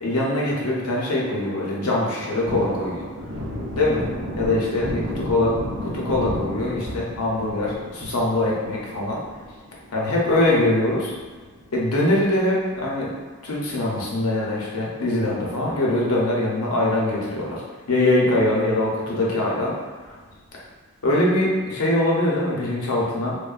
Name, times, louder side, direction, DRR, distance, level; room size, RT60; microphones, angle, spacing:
voice 1, 0.0-3.1 3.8-4.1 4.4-5.5 5.8-9.2 9.9-11.1 11.7-13.1 13.4-17.6 17.9-19.8 21.0-23.4, left 1 dB, 85° left, -4 dB, 0.7 m, -22 dB
Thunder, 2.5-12.8 13.2-13.3 13.6-15.1 15.4-15.6 15.9-16.7 17.1-17.2 17.6-17.7 20.0-20.6, equal, 55° right, 0.5 m, -34 dB
2.9 x 2.1 x 2.4 m, 1.4 s
head